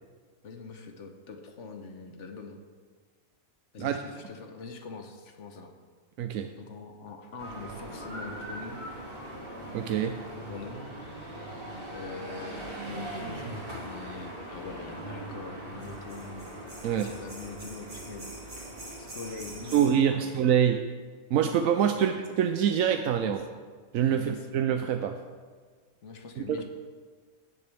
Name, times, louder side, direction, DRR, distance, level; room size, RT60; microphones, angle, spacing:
voice 1, 0.4-2.6 3.7-5.7 6.6-8.8 10.5-10.8 11.9-16.5 16.8-18.3 19.0-19.8 20.1-20.3 21.9-22.2 23.2-23.4 24.1-24.5 26.0-26.6, left 4 dB, 65° left, 5 dB, 1.2 m, -43 dB
voice 2, 6.2-6.5 9.7-10.1 16.8-17.1 19.7-20.8 21.3-23.4 23.9-25.2 26.4-26.6, right 9 dB, 90° right, 6 dB, 1.0 m, -25 dB
sound 1, 7.4-19.9, right 1 dB, 40° right, 2.6 m, -40 dB
16.5 x 7.0 x 3.4 m, 1.5 s
omnidirectional pair, 1.4 m